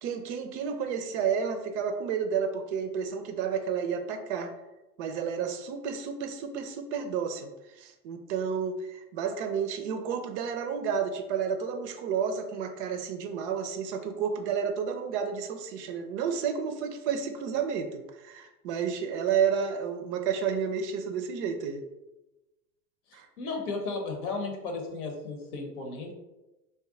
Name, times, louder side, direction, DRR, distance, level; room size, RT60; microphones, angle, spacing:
voice 1, 0.0-4.5 5.0-21.8 23.1-23.3, right 7 dB, 50° right, 6 dB, 0.4 m, -31 dB
voice 2, 23.4-26.1, left 3 dB, 65° left, 2 dB, 0.9 m, -34 dB
2.6 x 2.2 x 3.6 m, 1.0 s
hypercardioid pair, 90°, 47 cm